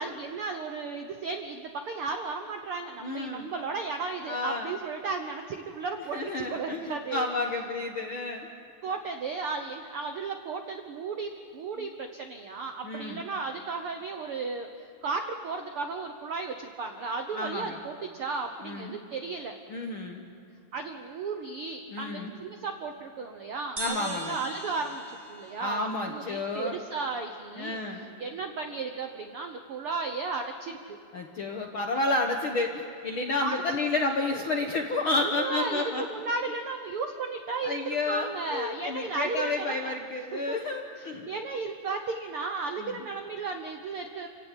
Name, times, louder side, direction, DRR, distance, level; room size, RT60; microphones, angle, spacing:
voice 1, 0.0-7.3 8.8-19.5 20.7-31.0 33.4-33.6 35.3-39.9 40.3-40.6 41.0-44.3, right 4 dB, 70° right, 5 dB, 1.3 m, -35 dB
voice 2, 3.0-3.5 4.3-4.7 6.1-8.5 11.8-11.9 12.8-13.2 17.3-17.8 18.6-19.0 19.7-20.2 21.9-22.3 23.8-24.4 25.6-26.8 27.6-28.1 31.1-36.1 37.6-41.3 42.8-43.0, left 2 dB, 60° left, 3 dB, 1.4 m, -31 dB
sound 1, 23.8-27.3, right 1 dB, 25° right, 1.5 m, -41 dB
28.0 x 16.5 x 9.1 m, 2.7 s
omnidirectional pair, 4.0 m